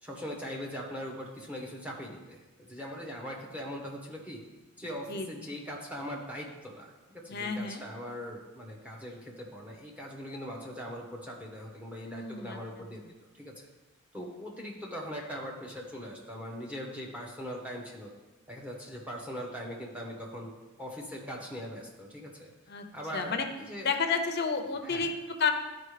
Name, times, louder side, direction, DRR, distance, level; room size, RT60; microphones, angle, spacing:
voice 1, 0.0-4.4 4.8-13.0 13.3-13.7 14.1-18.1 18.5-20.5 20.8-22.5 22.9-23.9 24.8-25.1, equal, 5° right, -3 dB, 1.2 m, -41 dB
voice 2, 7.3-7.8 12.0-12.6 22.7-22.8 23.1-23.5 23.8-25.5, left 5 dB, 45° left, 5 dB, 0.7 m, -31 dB
12.5 x 5.0 x 3.3 m, 1.1 s
head